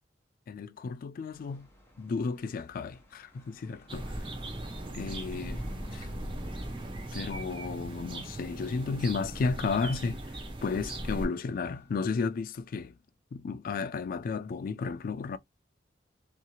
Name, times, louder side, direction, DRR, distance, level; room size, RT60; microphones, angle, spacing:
voice 1, 0.5-1.7 2.0-4.2 4.9-5.6 5.9-6.1 7.1-10.2 10.6-13.0 13.3-15.4, left 4 dB, 50° left, 0.3 m, -33 dB
sound 1, 1.3-11.9, left 1 dB, 15° left, 1.1 m, -55 dB
sound 2, 3.9-11.3, right 1 dB, 30° right, 0.7 m, -38 dB
2.8 x 2.7 x 2.3 m
head